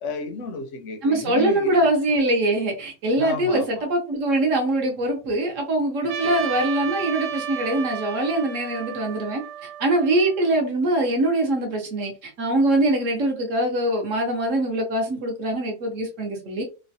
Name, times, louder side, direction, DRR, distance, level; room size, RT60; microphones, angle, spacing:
voice 1, 0.0-1.8 3.2-3.9 6.2-6.4 6.8-6.9, left 3 dB, 65° left, 0.8 m, -33 dB
voice 2, 1.0-16.6, right 1 dB, 60° right, 0.9 m, -23 dB
Trumpet, 6.1-10.5, right 9 dB, 90° right, 1.2 m, -33 dB
3.1 x 2.1 x 2.6 m
omnidirectional pair, 1.7 m